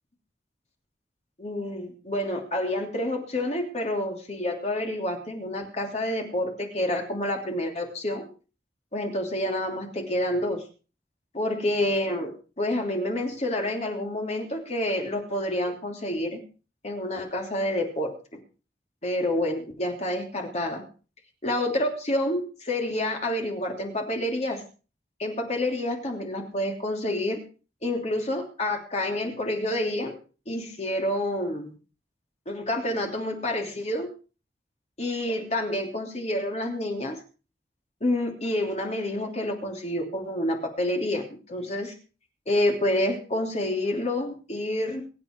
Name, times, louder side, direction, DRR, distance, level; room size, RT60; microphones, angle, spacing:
voice 1, 1.4-8.3 8.9-10.6 11.3-16.4 16.8-18.4 19.0-20.8 21.4-24.6 25.2-27.4 27.8-30.2 30.5-31.7 32.5-34.1 35.0-37.2 38.0-41.9 42.5-45.0, left 1 dB, 40° left, 3 dB, 3.0 m, -28 dB
23.5 x 8.4 x 4.6 m, 0.36 s
head